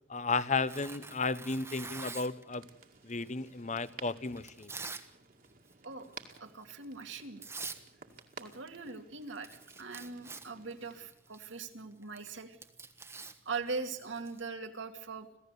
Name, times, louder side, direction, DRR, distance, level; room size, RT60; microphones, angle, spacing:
voice 1, 0.1-2.6 3.0-4.7, left 4 dB, 40° left, 16 dB, 0.9 m, -33 dB
Tearing, 0.7-2.4 3.2-5.1 5.4-5.7 6.1-6.4 7.1-7.2 7.4-7.8 8.1-8.6 8.9-9.0 9.2-14.4, right 4 dB, 15° right, 1.2 m, -46 dB
sound 1, 2.5-11.1, right 5 dB, 45° right, 2.2 m, -55 dB
voice 2, 5.8-7.4 8.4-9.5 9.8-12.6 13.4-15.3, right 4 dB, 75° right, 5 dB, 2.4 m, -41 dB
26.5 x 16.5 x 8.2 m, 0.73 s
head